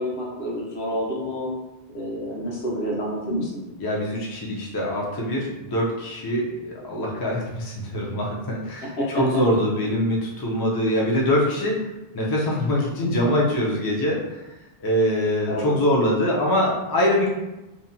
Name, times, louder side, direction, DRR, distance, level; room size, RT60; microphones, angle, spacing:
voice 1, 0.0-1.5 1.9-3.5 8.8-9.2 15.5-15.8, equal, 75° left, -4 dB, 1.0 m, -28 dB
voice 2, 3.8-11.8 12.1-14.4 14.8-17.3, equal, 35° left, -3 dB, 0.3 m, -23 dB
2.8 x 2.1 x 2.5 m, 0.97 s
omnidirectional pair, 1.0 m